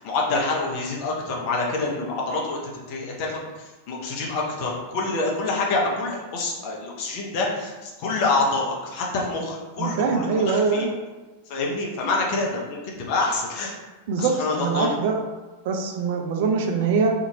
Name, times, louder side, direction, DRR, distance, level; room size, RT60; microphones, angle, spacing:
voice 1, 0.0-10.9 11.5-13.7 14.2-15.0, left 3 dB, 45° left, -2 dB, 0.7 m, -27 dB
voice 2, 9.8-10.9 14.1-15.2 15.7-17.1, right 5 dB, 50° right, 3 dB, 0.4 m, -23 dB
2.8 x 2.5 x 2.8 m, 1.2 s
figure-of-eight pair, 90°, 0 cm